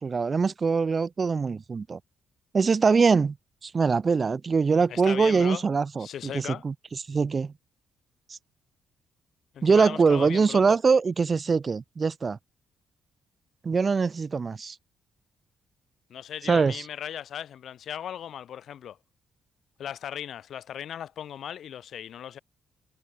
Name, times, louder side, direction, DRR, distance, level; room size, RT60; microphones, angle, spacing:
voice 1, 0.0-2.0 2.5-3.3 3.6-6.1 6.3-6.7 7.1-7.5 8.3-8.4 9.6-12.4 13.6-14.7 16.5-16.8, right 5 dB, 35° right, 1.3 m, -23 dB
voice 2, 4.9-5.6 6.0-6.6 9.5-10.8 16.1-19.0 19.8-22.4, left 9 dB, 65° left, 3.0 m, -37 dB
cardioid pair, 90°, 0 cm